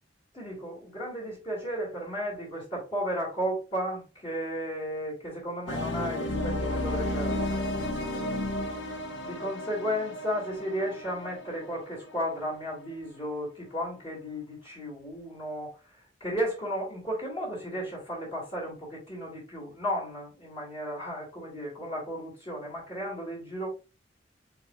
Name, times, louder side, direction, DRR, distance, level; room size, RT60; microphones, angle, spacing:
voice 1, 0.3-7.6 9.2-23.7, equal, 30° left, 2.4 m, -34 dB
sound 1, 5.7-12.5, left 1 dB, 85° left, 0.8 m, -33 dB
4.7 x 4.3 x 2.3 m
head